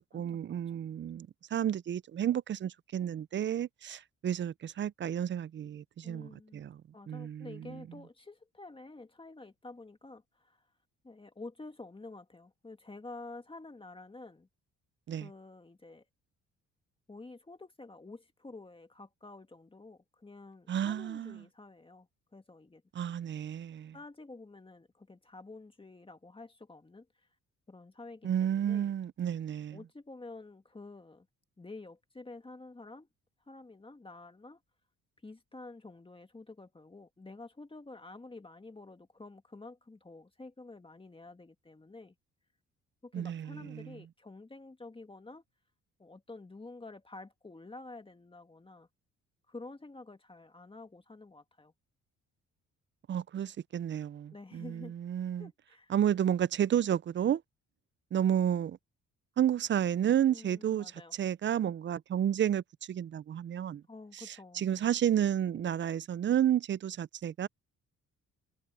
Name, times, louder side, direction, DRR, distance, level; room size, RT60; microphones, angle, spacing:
voice 1, 0.1-6.8 7.1-7.8 15.1-15.3 20.7-21.4 23.0-23.9 28.2-29.8 43.1-43.9 53.1-55.5 55.9-57.4 58.1-58.8 59.4-60.9 61.2-63.8 64.3-67.5, right 10 dB, 40° right, 0.5 m, -31 dB
voice 2, 6.0-6.6 6.9-10.7 11.0-14.5 15.1-16.0 17.1-23.1 23.9-27.3 27.7-28.9 29.7-31.3 31.6-33.1 33.5-34.6 35.2-42.1 43.0-45.4 46.0-48.9 49.5-51.7 54.3-54.9 55.4-55.9 60.3-61.1 63.9-64.6, left 3 dB, 15° left, 1.9 m, -49 dB
cardioid pair, 90°, 30 cm